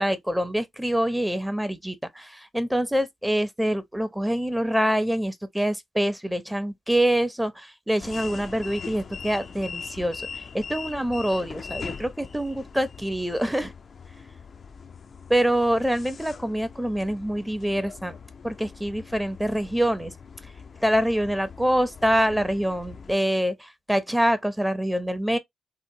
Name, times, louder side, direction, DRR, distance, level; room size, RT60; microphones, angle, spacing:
voice 1, 0.0-13.7 15.3-18.1 18.4-20.1 20.8-25.4, equal, 5° right, 0.7 m, -25 dB
sound 1, 8.0-23.2, left 5 dB, 50° left, 0.4 m, -41 dB
2.9 x 2.1 x 2.6 m
hypercardioid pair, 45°, 0 cm